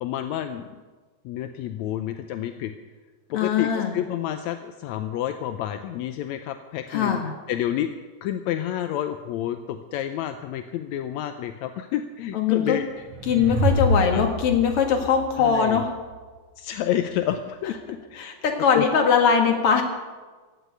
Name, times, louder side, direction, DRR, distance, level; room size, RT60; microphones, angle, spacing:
voice 1, 0.0-0.6 1.3-2.7 3.3-7.2 7.5-7.9 8.2-12.8 14.1-14.2 15.4-15.8 16.6-18.2 18.7-18.9, left 11 dB, 80° left, 8 dB, 1.9 m, -29 dB
voice 2, 3.3-4.0 6.9-7.3 12.3-12.8 13.3-15.9 18.2-19.8, left 7 dB, 55° left, 3 dB, 2.6 m, -21 dB
sound 1, 12.8-16.2, equal, 65° right, 2.6 m, -27 dB
15.5 x 8.2 x 9.4 m, 1.3 s
omnidirectional pair, 3.3 m